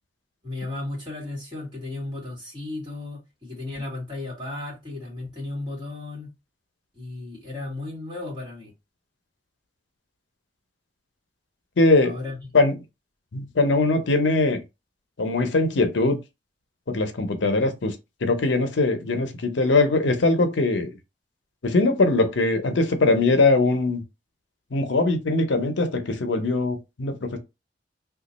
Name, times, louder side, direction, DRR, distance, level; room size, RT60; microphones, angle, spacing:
voice 1, 0.4-6.3 6.9-8.7 12.0-12.5, left 2 dB, 25° right, 1.9 m, -34 dB
voice 2, 11.8-12.2 12.5-12.7 13.3-14.6 15.2-16.2 16.9-17.9 18.2-20.9 21.6-24.0 24.7-27.4, left 3 dB, 75° left, 0.6 m, -21 dB
2.9 x 2.3 x 3.9 m
head